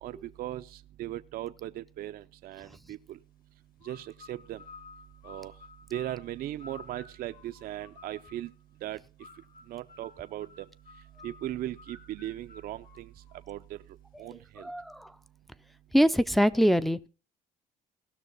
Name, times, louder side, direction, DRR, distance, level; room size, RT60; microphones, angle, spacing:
voice 1, 0.0-3.2 3.8-4.6 5.2-5.5 5.9-8.5 8.8-9.0 9.7-10.7 11.2-13.1 13.5-13.8 14.2-14.7, right 13 dB, 60° right, 0.5 m, -38 dB
sound 1, 3.8-8.5 9.2-13.6, left 4 dB, 60° left, 2.2 m, -53 dB
voice 2, 14.3-15.1 15.9-17.1, equal, ahead, 0.4 m, -24 dB
17.5 x 6.2 x 3.9 m
cardioid pair, 110°, 17 cm